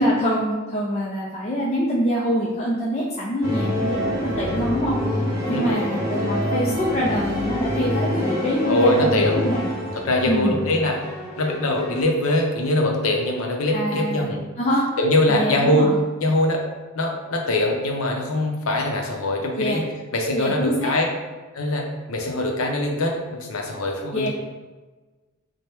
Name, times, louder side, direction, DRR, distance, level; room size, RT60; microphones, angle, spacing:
voice 1, 0.0-5.0 5.5-9.7 10.3-10.6 13.7-14.9 15.3-16.0 19.6-19.8 20.3-20.9 24.1-24.3, equal, 30° left, -5 dB, 0.4 m, -24 dB
sound 1, 3.4-12.0, equal, 15° right, 1.0 m, -26 dB
voice 2, 3.5-3.8 5.5-5.8 8.7-9.4 9.9-11.0 11.4-14.4 15.0-15.9 16.2-16.6 16.9-19.9 20.1-21.0 21.5-24.3, left 1 dB, 75° left, 1 dB, 0.6 m, -22 dB
4.3 x 2.2 x 3.3 m, 1.3 s
head